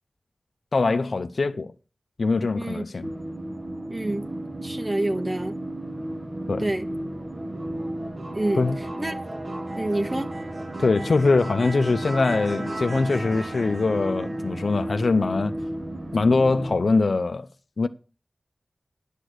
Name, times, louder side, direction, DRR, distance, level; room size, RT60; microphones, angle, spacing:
voice 1, 0.7-1.7 2.2-3.1 6.5-6.6 8.6-8.8 10.8-15.5 16.1-17.5 17.8-17.9, left 3 dB, 70° left, 0.6 m, -22 dB
voice 2, 2.5-2.8 3.9-5.6 6.6-6.9 8.3-8.7 9.0-9.2 9.8-10.3, right 1 dB, 25° right, 1.7 m, -28 dB
sound 1, 3.0-16.7, right 1 dB, 45° right, 1.7 m, -33 dB
11.0 x 8.3 x 6.4 m
cardioid pair, 50°, 0 cm